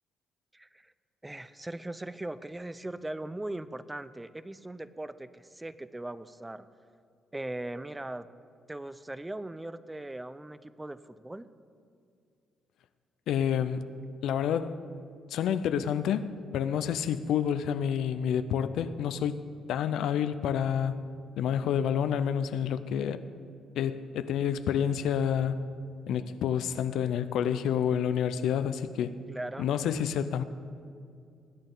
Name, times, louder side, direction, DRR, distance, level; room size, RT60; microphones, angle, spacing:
voice 1, 0.5-0.9 1.2-6.7 7.3-8.3 8.7-11.5 29.3-29.7, right 1 dB, 10° right, 14 dB, 0.4 m, -39 dB
voice 2, 13.3-13.9 14.2-14.8 15.3-19.4 19.7-21.0 21.4-23.2 23.8-25.6 26.1-29.1 29.6-30.4, left 8 dB, 80° left, 12 dB, 0.5 m, -29 dB
20.5 x 8.9 x 3.9 m, 2.4 s
cardioid pair, 90°, 0 cm